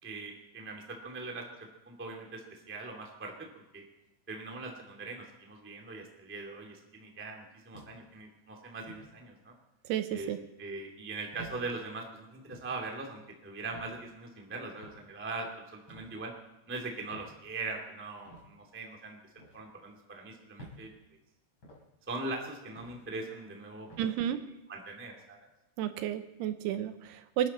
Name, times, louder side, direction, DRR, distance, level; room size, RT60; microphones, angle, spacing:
voice 1, 0.0-3.8 4.3-9.5 10.1-10.3 10.6-16.3 16.7-19.2 19.5-20.9 22.1-24.1 24.7-25.5, right 3 dB, 5° right, 0 dB, 1.0 m, -41 dB
sound 1, 7.7-8.2 8.9-9.1 10.1-10.3 11.3-11.6 12.5-12.8 13.7-14.0 14.8-15.1 15.9-16.1 17.1-17.4 18.2-18.5 19.4-19.6 20.6-20.8 21.6-21.9 22.8-23.0 23.9-24.1, right 1 dB, 30° left, 4.6 m, -50 dB
voice 2, 9.9-10.4 24.0-24.4 25.8-27.5, right 11 dB, 80° right, 10 dB, 2.7 m, -32 dB
26.5 x 11.5 x 4.3 m, 0.93 s
omnidirectional pair, 5.0 m